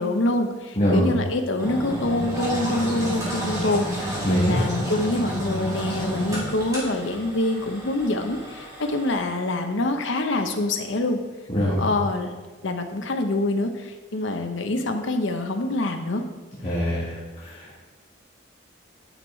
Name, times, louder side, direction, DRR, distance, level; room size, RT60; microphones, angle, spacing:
voice 1, 0.0-11.2 11.8-12.3 12.6-16.2, left 2 dB, 75° left, 5 dB, 0.8 m, -25 dB
voice 2, 0.8-1.1 4.3-4.7 11.5-11.8 16.6-17.8, equal, 30° left, -9 dB, 1.8 m, -23 dB
Engine, 1.6-9.1, equal, 15° right, 2.5 m, -30 dB
9.7 x 5.5 x 4.4 m, 1.4 s
head